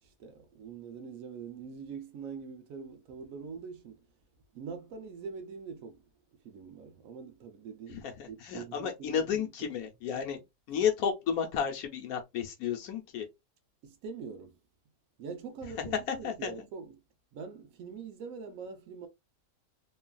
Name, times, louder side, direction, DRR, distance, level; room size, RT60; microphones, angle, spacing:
voice 1, 0.0-4.1 4.5-6.1 6.4-9.7 13.8-14.6 15.2-17.0 17.3-19.1, right 5 dB, 70° right, 1.0 m, -44 dB
voice 2, 7.9-10.4 10.7-13.3 15.8-16.5, left 7 dB, 70° left, 1.1 m, -32 dB
3.1 x 2.3 x 2.2 m
omnidirectional pair, 1.6 m